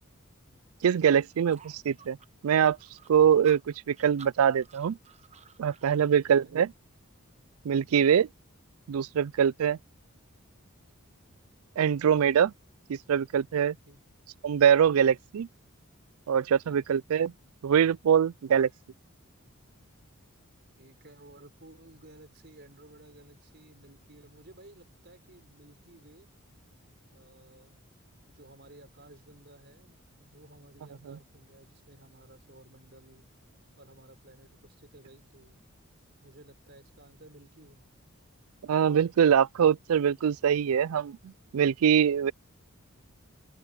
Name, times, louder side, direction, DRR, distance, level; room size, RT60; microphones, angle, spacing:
voice 1, 0.8-2.2 2.4-2.8 3.1-5.0 5.6-6.7 7.6-8.3 8.9-9.8 11.8-12.5 12.9-13.8 14.4-15.5 16.3-17.3 17.6-18.7 31.1-31.2 38.6-42.3, right 8 dB, 80° right, 0.4 m, -23 dB
sound 1, 1.5-6.0, right 6 dB, 30° right, 1.2 m, -53 dB
voice 2, 6.2-6.6 9.5-9.8 13.8-14.0 16.5-16.8 20.8-26.3 27.1-27.8 28.3-33.2 33.8-35.6 36.2-37.9, right 1 dB, 50° right, 5.0 m, -55 dB
open air
head